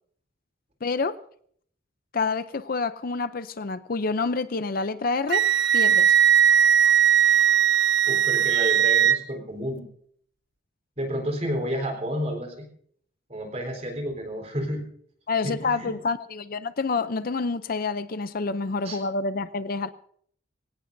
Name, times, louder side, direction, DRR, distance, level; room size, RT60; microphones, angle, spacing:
voice 1, 0.8-1.2 2.1-5.5 5.7-6.1 15.3-19.9, left 4 dB, 45° left, 12 dB, 0.6 m, -28 dB
Wind instrument woodwind instrument, 5.3-9.2, right 9 dB, 60° right, 0.7 m, -19 dB
voice 2, 8.1-9.8 11.0-12.7 13.3-14.8 15.4-15.9 18.8-19.0, equal, 35° right, 3 dB, 4.1 m, -30 dB
23.5 x 18.0 x 2.7 m, 0.62 s
head